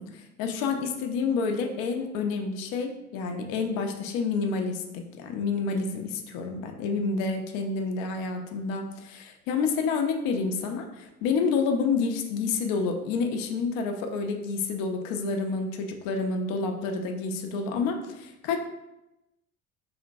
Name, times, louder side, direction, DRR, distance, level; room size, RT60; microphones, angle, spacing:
voice 1, 0.0-18.6, left 4 dB, 50° left, 4 dB, 0.6 m, -29 dB
4.2 x 2.9 x 2.6 m, 0.92 s
figure-of-eight pair, 55°, 43 cm